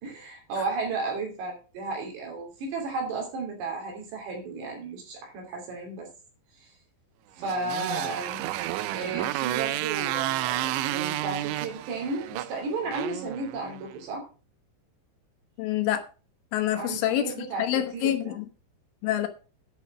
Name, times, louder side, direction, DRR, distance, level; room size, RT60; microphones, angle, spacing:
voice 1, 0.0-6.1 6.6-6.7 7.4-8.4 8.9-14.2 16.7-17.7 17.9-18.4, right 3 dB, 60° right, 4.9 m, -33 dB
Motorcycle, 7.4-13.9, right 15 dB, 85° right, 2.6 m, -31 dB
voice 2, 15.6-16.0 16.5-18.5 19.0-19.3, left 12 dB, 75° left, 3.6 m, -27 dB
11.0 x 6.5 x 6.0 m
omnidirectional pair, 5.9 m